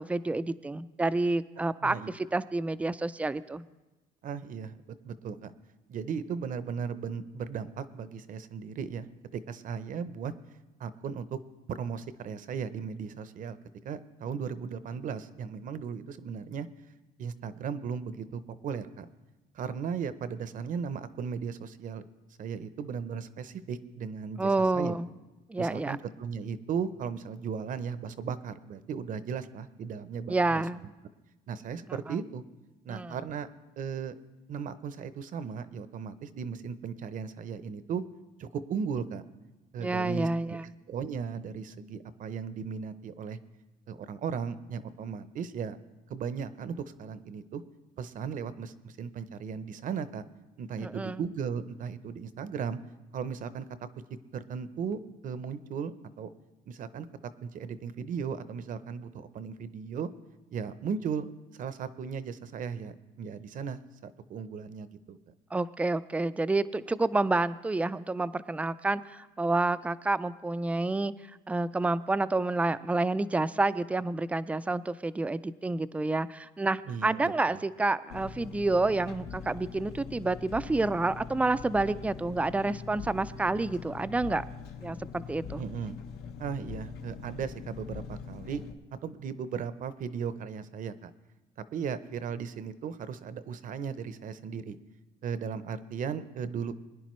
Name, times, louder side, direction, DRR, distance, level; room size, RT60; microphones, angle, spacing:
voice 1, 0.0-3.6 24.4-25.1 25.5-26.0 30.3-30.8 31.9-32.0 32.9-33.1 39.8-40.6 50.8-51.2 65.5-71.1 71.5-84.4 84.8-85.6, right 2 dB, 10° right, 15 dB, 0.3 m, -29 dB
voice 2, 4.2-4.8 5.0-5.5 5.9-9.1 9.3-10.3 10.8-11.4 11.7-13.6 13.8-16.7 17.2-19.1 19.5-22.0 22.4-25.0 25.6-30.6 31.5-32.4 32.8-33.5 33.8-34.1 34.5-38.0 38.4-39.2 39.7-40.6 40.9-43.4 43.9-45.8 46.1-47.6 48.0-50.2 50.6-52.8 53.1-53.7 54.3-56.3 56.7-57.1 57.4-60.1 60.5-61.3 61.6-65.3 76.9-77.6 85.6-86.0 86.4-88.6 89.0-91.1 91.7-94.8 95.2-96.7, right 6 dB, 50° right, 14 dB, 0.6 m, -36 dB
Engine, 78.1-88.7, left 6 dB, 75° left, 1.0 m, -43 dB
21.5 x 10.0 x 3.1 m, 1.1 s
cardioid pair, 110°, 17 cm